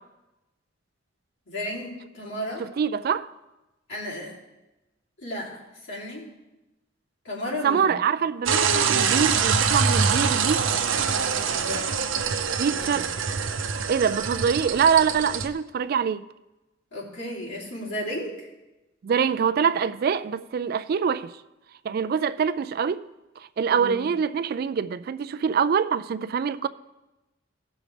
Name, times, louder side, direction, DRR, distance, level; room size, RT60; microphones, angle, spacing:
voice 1, 1.5-2.6 3.9-4.4 5.2-6.3 7.2-7.9 11.6-12.2 12.7-13.0 16.9-18.5 23.7-24.0, left 1 dB, 80° left, 2.9 m, -34 dB
voice 2, 2.6-3.3 7.6-10.7 12.6-13.1 13.9-16.2 19.0-21.3 21.8-23.0 23.4-26.7, right 6 dB, 50° right, 0.3 m, -24 dB
sound 1, 8.5-15.5, right 6 dB, 90° right, 0.7 m, -24 dB
17.0 x 6.3 x 3.3 m
head